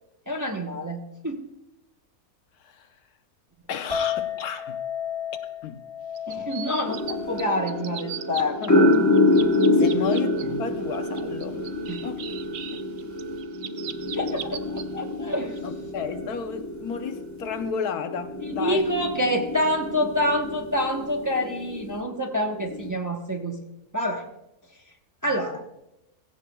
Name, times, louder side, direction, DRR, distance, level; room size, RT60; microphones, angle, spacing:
voice 1, 0.3-1.5 6.3-8.9 9.9-10.0 11.9-12.0 12.7-12.8 14.1-15.6 18.5-23.6 23.9-24.2 25.2-25.6, equal, 15° right, 0.8 m, -27 dB
voice 2, 3.7-4.8 5.6-5.8 8.6-8.8 9.7-11.6 12.0-12.3 15.6-18.9, left 6 dB, 85° left, 1.3 m, -32 dB
Chink clink, 3.9-10.2, left 8 dB, 35° right, 3.0 m, -35 dB
sound 1, 6.1-7.1 7.4-8.7 8.9-10.4 10.9-14.8 15.3-15.6, right 9 dB, 75° right, 0.5 m, -38 dB
sound 2, 6.9-22.0 22.6-22.9, left 2 dB, 15° left, 0.8 m, -26 dB
16.0 x 15.0 x 2.3 m
omnidirectional pair, 1.6 m